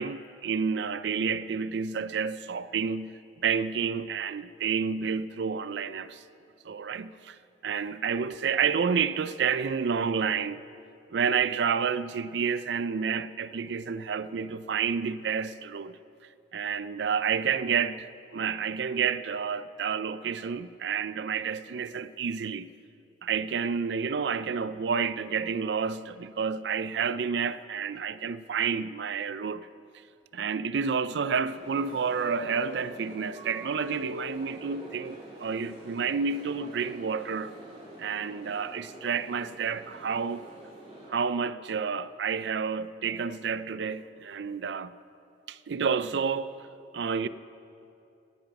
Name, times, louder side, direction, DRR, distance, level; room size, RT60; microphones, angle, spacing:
voice 1, 0.0-6.2 6.6-7.4 7.6-10.6 11.1-16.0 16.5-22.7 23.2-29.7 30.3-37.5 38.0-40.5 41.1-44.9 45.5-46.6 46.9-47.3, right 6 dB, 80° right, 0.4 m, -30 dB
sound 1, 31.5-41.1, equal, 40° right, 3.7 m, -45 dB
17.0 x 10.5 x 5.9 m
head